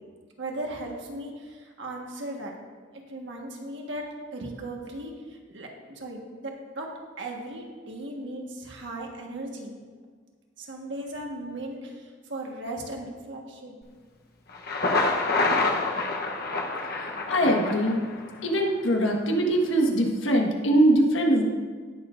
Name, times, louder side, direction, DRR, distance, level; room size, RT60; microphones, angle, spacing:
voice 1, 0.4-2.5 2.9-4.0 4.3-6.9 7.2-9.8 10.6-13.8, right 1 dB, 70° right, 0 dB, 1.5 m, -37 dB
Thunder, 14.5-18.5, left 3 dB, 55° left, 0.9 m, -27 dB
voice 2, 17.3-18.0 18.4-21.4, right 1 dB, 90° left, 1 dB, 1.5 m, -22 dB
18.0 x 6.9 x 2.6 m, 1.5 s
head